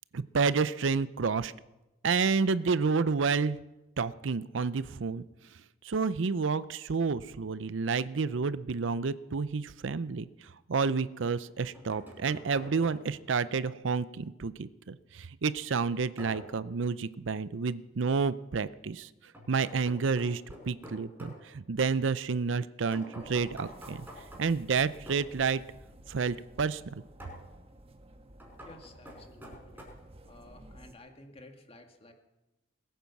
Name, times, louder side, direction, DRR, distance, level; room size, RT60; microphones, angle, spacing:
voice 1, 0.1-1.5 2.0-3.6 4.0-5.2 5.8-10.3 10.7-19.1 19.5-24.1 24.4-25.6 26.1-27.0, right 5 dB, 70° right, 16 dB, 0.6 m, -30 dB
sound 1, 11.4-13.3 16.2-16.7 19.3-21.4 22.9-25.3 27.2-27.5 28.4-29.8, equal, 10° right, 4.9 m, -48 dB
sound 2, 23.2-31.0, right 1 dB, 30° right, 1.3 m, -53 dB
voice 2, 28.6-29.8 30.3-32.1, left 2 dB, 30° left, 5 dB, 1.9 m, -53 dB
21.0 x 9.4 x 7.1 m, 1.0 s
head